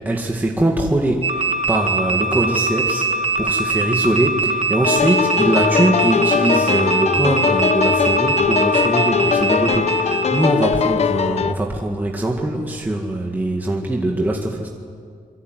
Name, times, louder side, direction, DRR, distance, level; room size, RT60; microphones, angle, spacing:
voice 1, 0.0-14.7, right 1 dB, 15° right, 0 dB, 2.0 m, -22 dB
sound 1, 1.2-10.5, right 3 dB, 45° right, 1.9 m, -22 dB
sound 2, 4.8-11.5, left 6 dB, 50° left, 0.8 m, -20 dB
26.0 x 23.5 x 9.4 m, 2.2 s
wide cardioid pair, 160°, 14 cm